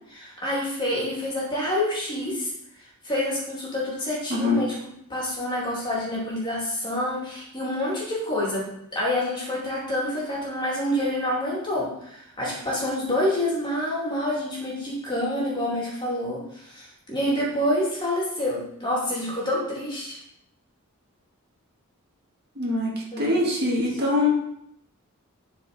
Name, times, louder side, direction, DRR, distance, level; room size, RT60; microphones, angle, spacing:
voice 1, 0.1-2.5 3.0-4.7 5.1-8.7 8.9-20.2 23.1-23.9, left 1 dB, 20° left, -5 dB, 2.7 m, -27 dB
voice 2, 4.3-4.6 22.6-22.9 23.2-24.3, left 2 dB, 45° right, -2 dB, 1.8 m, -23 dB
11.0 x 4.7 x 4.1 m, 0.76 s
head